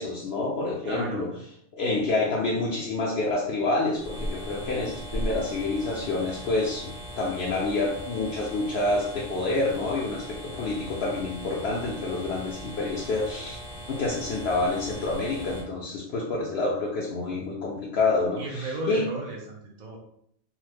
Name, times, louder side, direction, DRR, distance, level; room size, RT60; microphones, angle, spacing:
voice 1, 0.0-1.3 1.7-13.6 13.9-19.0, left 3 dB, 65° left, -3 dB, 0.8 m, -28 dB
voice 2, 0.8-1.4 18.4-20.0, right 2 dB, 50° right, -2 dB, 0.6 m, -34 dB
sound 1, 3.9-15.6, equal, 30° left, 0.5 m, -39 dB
3.0 x 2.0 x 3.3 m, 0.69 s
omnidirectional pair, 1.2 m